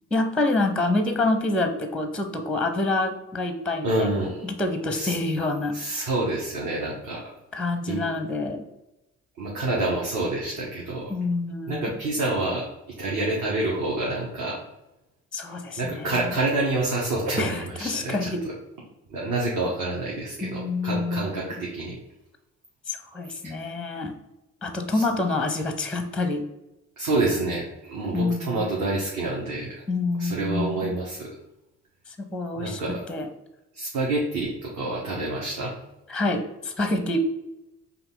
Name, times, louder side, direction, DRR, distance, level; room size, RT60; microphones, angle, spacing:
voice 1, 0.1-5.8 7.5-8.6 11.1-12.0 15.3-16.4 17.4-18.4 20.4-21.6 22.9-24.1 24.6-26.4 28.1-28.7 29.9-31.0 32.1-33.3 36.1-37.2, left 2 dB, ahead, 7 dB, 0.6 m, -27 dB
voice 2, 3.8-4.5 4.9-5.1 5.7-7.2 7.9-8.0 9.4-11.0 11.7-12.7 13.0-14.6 15.8-18.3 19.1-22.0 23.4-23.5 27.0-29.8 30.2-31.3 32.6-33.0 33.8-35.7, right 2 dB, 50° right, -3 dB, 1.1 m, -27 dB
5.2 x 2.4 x 3.7 m, 0.96 s
figure-of-eight pair, 45°, 42 cm